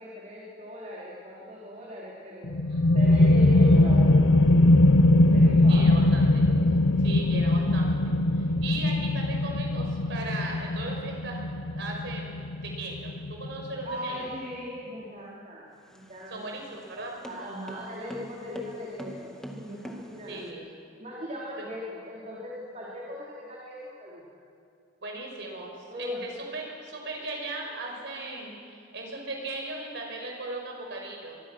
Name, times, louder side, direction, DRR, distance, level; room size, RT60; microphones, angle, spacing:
voice 1, 0.0-2.5 2.9-4.9 5.2-6.1 6.9-7.1 13.8-16.5 17.3-20.4 21.0-24.2 25.9-26.3, left 1 dB, 35° right, -5 dB, 3.8 m, -39 dB
sound 1, 2.4-13.8, left 2 dB, 75° left, 0.8 m, -21 dB
voice 2, 2.6-2.9 5.7-6.4 7.0-7.9 8.3-11.4 11.7-14.3 16.3-17.2 20.3-20.7 21.6-21.7 25.0-31.4, right 2 dB, 65° right, 0 dB, 5.6 m, -38 dB
sound 2, 15.8-20.5, equal, 5° left, 2.0 m, -44 dB
24.5 x 23.5 x 6.2 m, 2.5 s
head